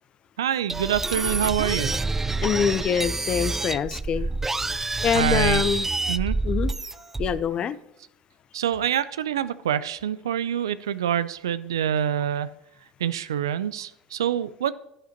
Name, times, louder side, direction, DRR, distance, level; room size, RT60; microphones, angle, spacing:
voice 1, 0.4-1.9 5.1-5.7 6.1-6.4 8.5-12.5 13.0-14.7, right 9 dB, 85° right, 16 dB, 0.4 m, -26 dB
sound 1, 0.7-7.5, right 3 dB, 15° right, 0.4 m, -27 dB
voice 2, 2.4-4.3 5.0-5.9 6.4-6.7 7.2-7.8, left 7 dB, 45° left, 16 dB, 0.7 m, -24 dB
11.0 x 10.5 x 2.9 m, 0.83 s
hypercardioid pair, 70°, 2 cm